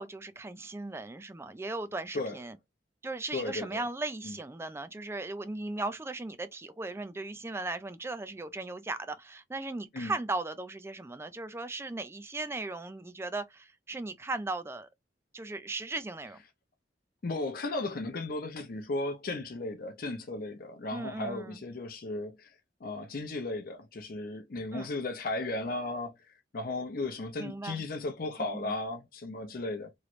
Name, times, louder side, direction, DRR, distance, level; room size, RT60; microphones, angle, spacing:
voice 1, 0.0-2.5 3.0-14.9 15.3-16.4 20.9-21.6 24.7-24.9 27.4-27.8 28.5-28.7, right 2 dB, 15° right, 0.3 m, -37 dB
voice 2, 3.3-3.9 4.2-4.4 9.9-10.1 17.2-22.5 22.8-26.1 26.5-29.9, left 2 dB, 50° left, 0.6 m, -35 dB
3.1 x 2.9 x 2.5 m
head